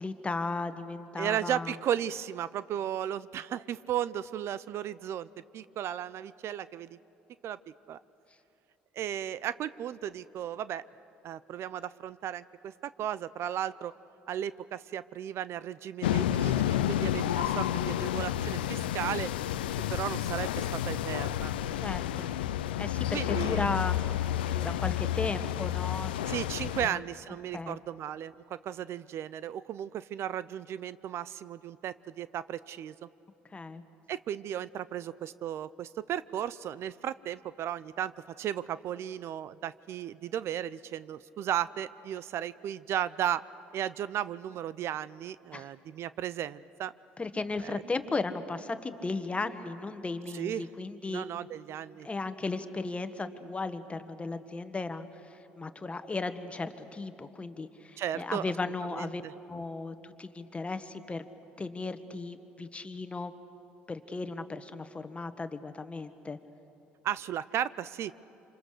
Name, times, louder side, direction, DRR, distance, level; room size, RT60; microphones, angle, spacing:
voice 1, 0.0-1.7 21.8-22.3 22.8-24.1 24.5-26.3 26.8-27.0 27.5-27.8 33.5-33.8 45.5-45.7 47.2-51.2 52.0-55.1 55.6-59.2 59.5-61.3 61.6-63.3 63.9-66.4, left 3 dB, 25° left, 10 dB, 1.5 m, -35 dB
voice 2, 1.2-5.3 5.5-7.0 7.4-7.6 7.9-8.0 9.0-10.8 11.2-13.9 14.3-19.3 19.9-21.5 23.1-23.7 26.3-32.9 34.1-38.1 38.4-43.4 43.7-46.9 47.6-47.8 50.3-50.7 51.1-52.1 58.0-58.4 58.9-59.3 67.0-68.2, right 10 dB, 60° right, 18 dB, 0.5 m, -35 dB
sound 1, 16.0-26.9, left 12 dB, 90° left, 0.5 m, -30 dB
27.5 x 25.5 x 6.6 m, 2.8 s
hypercardioid pair, 65°, 5 cm